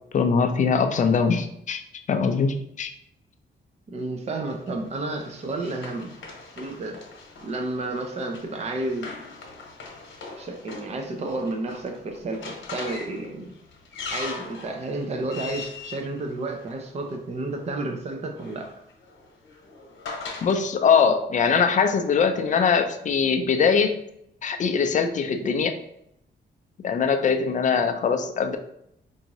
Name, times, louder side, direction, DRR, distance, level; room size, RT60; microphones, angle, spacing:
voice 1, 0.1-1.8 2.1-2.9 20.4-24.0 24.4-25.7 26.8-28.6, left 6 dB, 40° left, 7 dB, 0.4 m, -22 dB
voice 2, 3.9-6.1 6.6-7.0 7.4-9.1 10.4-13.4 14.1-18.7, right 2 dB, 35° right, 3 dB, 0.5 m, -31 dB
Run, 4.5-17.1 18.1-20.6, left 4 dB, 85° left, 1.0 m, -41 dB
4.6 x 2.6 x 2.9 m, 0.77 s
wide cardioid pair, 155°, 19 cm